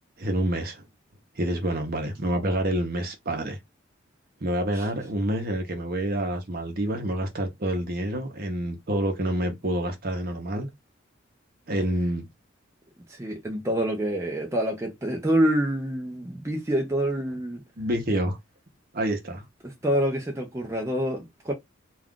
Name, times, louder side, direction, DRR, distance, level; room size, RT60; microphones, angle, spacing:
voice 1, 0.2-0.8 1.4-3.6 4.4-10.7 11.7-12.2 17.8-18.4 18.9-19.4, right 1 dB, 45° right, 0.8 m, -27 dB
voice 2, 13.1-17.6 19.6-21.5, right 1 dB, 15° right, 0.5 m, -27 dB
2.4 x 2.4 x 3.5 m
head